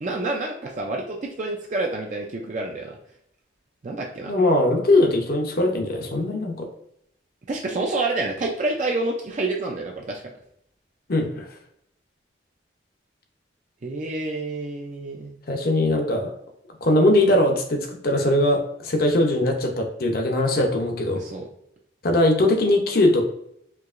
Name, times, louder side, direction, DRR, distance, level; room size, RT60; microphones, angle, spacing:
voice 1, 0.0-3.0 3.8-4.3 7.5-10.2 13.8-15.4 21.1-21.5, right 2 dB, 40° right, 0 dB, 0.4 m, -28 dB
voice 2, 4.2-6.7 11.1-11.5 15.5-16.3 16.8-21.2 22.0-23.2, left 1 dB, 50° left, 3 dB, 0.7 m, -20 dB
4.6 x 2.8 x 2.5 m, 0.73 s
head